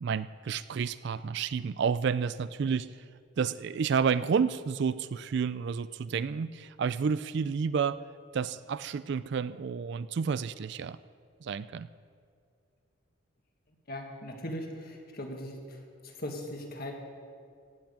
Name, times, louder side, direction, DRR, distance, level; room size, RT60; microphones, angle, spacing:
voice 1, 0.0-2.9 3.4-8.0 8.3-11.0 11.4-11.9, right 6 dB, 55° right, 15 dB, 0.3 m, -30 dB
voice 2, 13.9-16.9, left 1 dB, 45° left, 2 dB, 1.8 m, -39 dB
17.0 x 6.0 x 8.5 m, 2.2 s
head